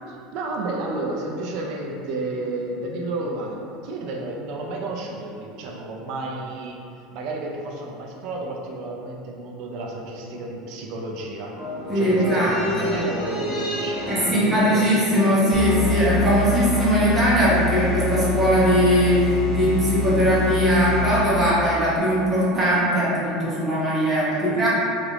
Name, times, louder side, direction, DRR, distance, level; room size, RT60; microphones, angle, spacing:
voice 1, 0.0-6.8 7.1-11.6 11.9-14.9 24.3-24.6, right 2 dB, 50° right, 0 dB, 0.3 m, -32 dB
sound 1, 11.5-18.1 18.4-18.5, equal, 50° left, 1.0 m, -31 dB
voice 2, 11.9-12.9 14.0-24.7, equal, 10° right, -9 dB, 0.8 m, -20 dB
sound 2, 15.5-21.6, left 3 dB, 25° left, 0.3 m, -26 dB
3.2 x 2.4 x 2.9 m, 2.6 s
cardioid pair, 170°, 0 cm